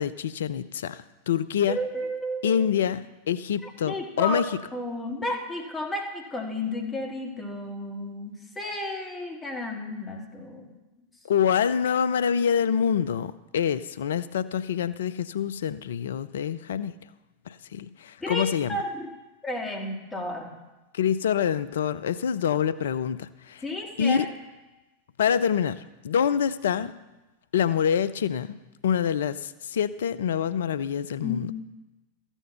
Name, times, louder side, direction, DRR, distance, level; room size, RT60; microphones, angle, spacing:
voice 1, 0.0-1.8 2.4-4.5 11.3-16.9 17.5-18.8 20.9-23.6 24.0-24.3 25.2-26.9 27.5-28.5 28.8-31.5, left 8 dB, 70° left, 15 dB, 0.5 m, -26 dB
voice 2, 1.7-2.7 3.6-4.4 4.7-10.7 18.2-19.1 19.4-20.5 23.6-24.2 31.2-31.5, left 1 dB, 15° left, 1 dB, 2.3 m, -32 dB
14.0 x 7.2 x 6.8 m, 1.1 s
figure-of-eight pair, 90°, 0 cm